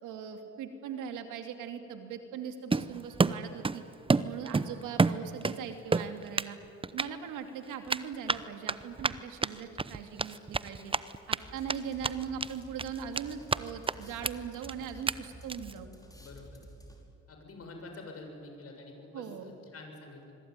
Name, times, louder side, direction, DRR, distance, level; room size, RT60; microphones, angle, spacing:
voice 1, 0.0-3.8 4.2-6.6 6.9-10.9 11.3-15.9 19.1-19.5, right 7 dB, 90° right, 6 dB, 2.6 m, -40 dB
Run, 2.7-3.8 4.1-5.6 5.9-6.5 6.8-7.1 7.9-11.4 11.7-11.8 12.0-12.5 12.8-13.6 13.9-14.0 14.2-14.3 14.6-14.7 15.1-15.2 15.5-15.7, right 4 dB, 20° right, 0.7 m, -28 dB
sound 1, 11.4-17.3, equal, 10° left, 5.5 m, -51 dB
voice 2, 16.1-16.6 17.3-20.3, left 2 dB, 50° left, 4 dB, 7.0 m, -47 dB
25.5 x 23.0 x 9.7 m, 2.7 s
cardioid pair, 90°, 30 cm